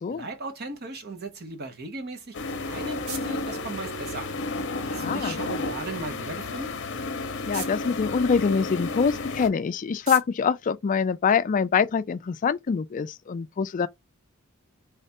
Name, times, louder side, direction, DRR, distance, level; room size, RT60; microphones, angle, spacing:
voice 1, 0.1-4.3 4.9-6.7, right 2 dB, 50° right, 0.8 m, -37 dB
sound 1, 2.3-9.5, left 2 dB, 60° left, 0.7 m, -32 dB
voice 2, 4.8-5.3 7.5-13.9, left 6 dB, 40° left, 0.3 m, -25 dB
sound 2, 11.7-11.8, right 6 dB, 85° right, 1.0 m, -47 dB
3.2 x 3.2 x 2.8 m
head